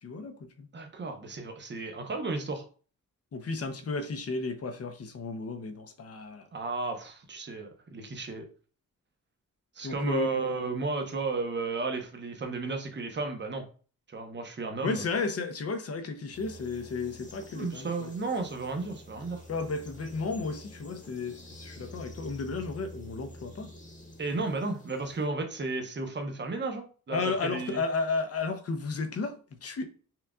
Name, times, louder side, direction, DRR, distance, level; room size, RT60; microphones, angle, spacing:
voice 1, 0.0-0.7 3.3-6.4 9.8-10.8 14.8-18.1 19.5-23.7 27.1-29.8, left 4 dB, 50° left, 0.7 m, -33 dB
voice 2, 0.7-2.6 6.5-8.4 9.8-13.6 14.1-15.0 17.5-19.4 24.2-27.8, right 3 dB, 35° right, 0.8 m, -33 dB
sound 1, 16.3-25.3, equal, 25° left, 1.1 m, -48 dB
5.6 x 2.4 x 2.3 m
cardioid pair, 95°, 31 cm